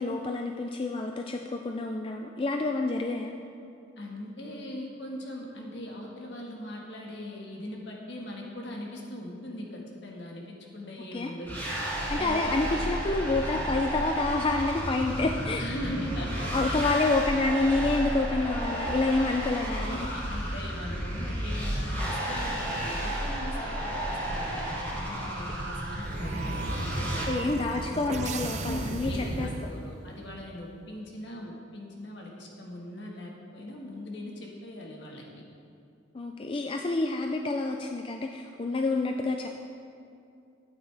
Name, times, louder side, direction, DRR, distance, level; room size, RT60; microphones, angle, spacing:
voice 1, 0.0-3.3 11.1-11.3 12.1-15.6 16.5-20.1 27.3-29.5 36.1-39.5, left 3 dB, 25° left, 3 dB, 0.3 m, -28 dB
voice 2, 4.0-11.6 12.1-12.5 15.6-16.8 19.8-24.6 25.0-28.1 28.6-35.2, left 1 dB, 65° left, -1 dB, 1.6 m, -40 dB
sound 1, 11.5-27.3, equal, 10° left, 2.7 m, -32 dB
sound 2, 25.2-30.2, right 3 dB, 35° right, 0.5 m, -36 dB
12.5 x 8.9 x 3.4 m, 2.5 s
head